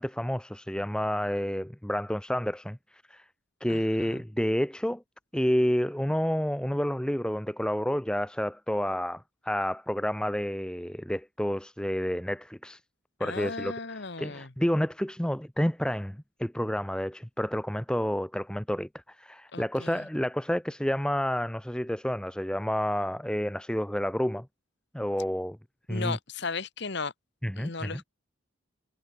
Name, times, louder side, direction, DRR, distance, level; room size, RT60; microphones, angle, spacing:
voice 1, 0.0-2.8 3.1-3.2 3.6-5.0 5.3-12.8 13.2-24.5 24.9-25.6 25.9-26.2 27.4-28.0, equal, 5° left, 0.7 m, -29 dB
voice 2, 3.7-4.2 13.2-14.5 19.5-20.1 25.9-27.1 27.6-28.0, left 4 dB, 55° left, 1.3 m, -36 dB
head